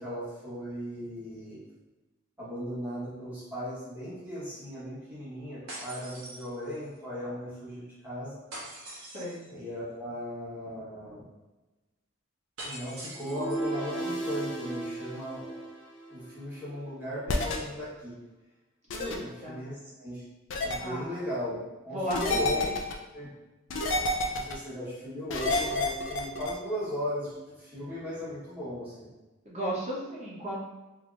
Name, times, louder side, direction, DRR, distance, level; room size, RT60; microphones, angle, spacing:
voice 1, 0.0-1.6 2.4-8.4 9.4-11.2 12.6-15.7 16.1-18.1 19.2-20.2 20.6-22.7 23.1-23.3 24.3-29.1, equal, 10° right, -11 dB, 1.2 m, -37 dB
sound 1, 5.7-7.0 8.5-9.5 12.6-13.8, right 1 dB, 85° right, 1.0 m, -43 dB
voice 2, 9.1-9.4 18.9-19.6 20.8-21.2 21.9-22.7 29.4-30.6, equal, 30° right, -5 dB, 0.9 m, -35 dB
sound 2, 13.2-16.4, right 2 dB, 25° left, 0.7 m, -35 dB
sound 3, 17.3-17.6 18.9-19.2 20.5-20.8 22.1-22.9 23.7-24.5 25.3-26.5, left 2 dB, 60° left, 0.4 m, -28 dB
3.7 x 2.8 x 2.4 m, 1.1 s
head